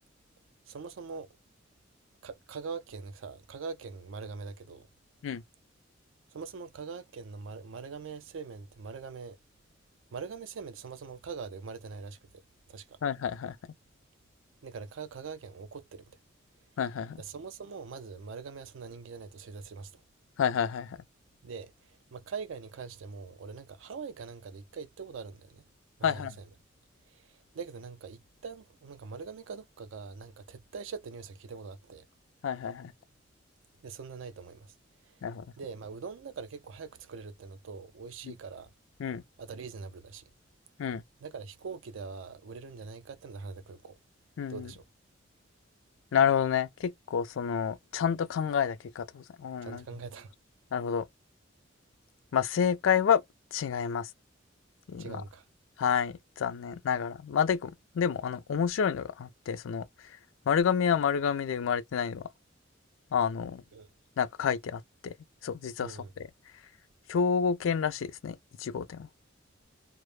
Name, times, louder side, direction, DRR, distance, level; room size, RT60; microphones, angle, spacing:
voice 1, 0.7-1.3 2.2-4.9 6.3-9.4 10.1-12.4 12.7-13.0 14.6-16.2 17.2-20.0 21.4-25.7 26.0-26.5 27.0-32.1 33.8-34.7 35.0-35.2 35.6-38.7 39.4-40.2 41.2-43.9 44.5-44.8 49.6-50.3 55.0-55.5 63.7-63.9 65.8-66.1, right 5 dB, 80° right, 0.4 m, -43 dB
voice 2, 13.0-13.6 16.8-17.2 20.4-21.0 26.0-26.4 32.4-32.9 35.2-35.5 38.3-38.4 39.0-39.2 40.8-41.0 44.4-44.7 46.1-49.8 50.7-51.1 52.3-53.2 53.5-54.1 54.9-55.2 55.8-59.9 60.5-62.3 63.1-63.6 64.2-65.1 65.4-66.3 67.1-69.1, left 7 dB, 85° left, 0.4 m, -29 dB
2.1 x 2.0 x 3.0 m
head